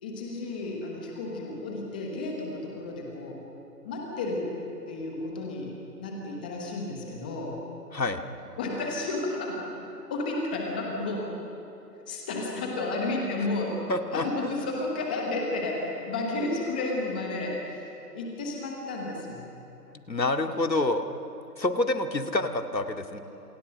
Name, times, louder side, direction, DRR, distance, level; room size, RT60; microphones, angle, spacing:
voice 1, 0.0-3.4 3.8-4.5 4.9-5.7 6.0-7.6 8.6-9.7 10.1-11.3 12.1-13.8 14.1-17.8 18.1-19.4, left 2 dB, 5° left, 0 dB, 1.0 m, -32 dB
voice 2, 13.9-14.6 20.1-21.1 21.6-23.2, left 2 dB, 80° left, 6 dB, 2.4 m, -27 dB
29.0 x 27.5 x 6.4 m, 2.9 s
figure-of-eight pair, 155°, 50 cm